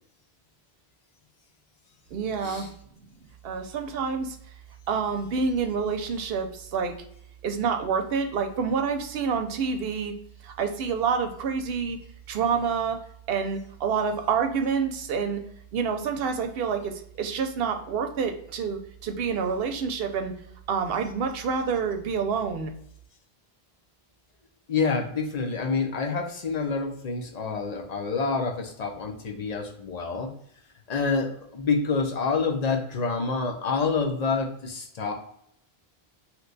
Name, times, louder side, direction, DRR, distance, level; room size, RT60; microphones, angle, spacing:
voice 1, 2.1-2.7 3.4-4.4 4.9-6.9 7.4-10.1 10.4-12.0 12.3-13.0 13.3-15.4 15.7-20.3 20.7-22.7, right 6 dB, 70° right, 5 dB, 0.8 m, -27 dB
voice 2, 24.7-30.3 30.9-35.1, left 4 dB, 50° left, 2 dB, 0.6 m, -27 dB
2.9 x 2.2 x 3.8 m, 0.71 s
omnidirectional pair, 1.0 m